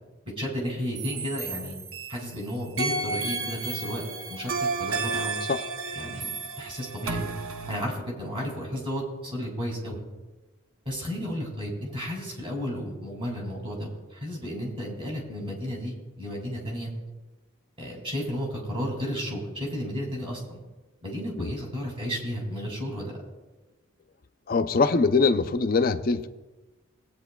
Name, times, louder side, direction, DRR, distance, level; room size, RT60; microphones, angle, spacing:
voice 1, 0.4-1.8 2.1-4.0 4.3-4.5 4.8-5.4 6.0-6.3 6.6-7.2 7.7-10.0 10.9-16.9 17.8-20.6 21.0-23.2, equal, 25° right, -1 dB, 2.4 m, -33 dB
sound 1, 1.0-2.3 2.8-7.8, right 3 dB, 70° right, 0.7 m, -32 dB
voice 2, 24.5-26.3, left 4 dB, 40° left, 9 dB, 0.4 m, -23 dB
19.5 x 8.7 x 2.3 m, 1.2 s
head